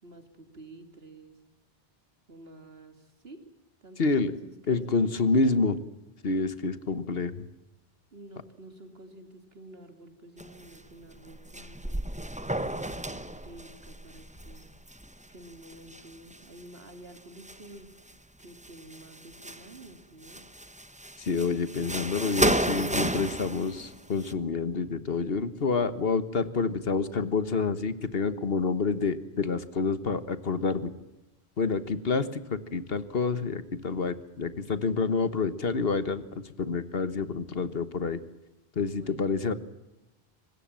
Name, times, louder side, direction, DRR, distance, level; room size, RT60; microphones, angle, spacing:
voice 1, 0.0-1.4 2.3-3.4 3.8-5.7 8.1-12.0 12.8-14.6 15.3-18.1 18.4-20.4 38.8-39.3, right 1 dB, 75° right, 7 dB, 3.0 m, -50 dB
voice 2, 4.0-4.3 4.7-5.8 6.2-7.5 21.2-30.9 31.6-38.2 38.7-39.5, left 4 dB, 70° left, 14 dB, 1.5 m, -28 dB
sound 1, 10.4-10.8 11.1-16.6 17.2-18.1 18.4-19.9 20.2-24.3, right 1 dB, 5° right, 1.0 m, -33 dB
24.5 x 20.0 x 7.5 m, 1.0 s
omnidirectional pair, 1.0 m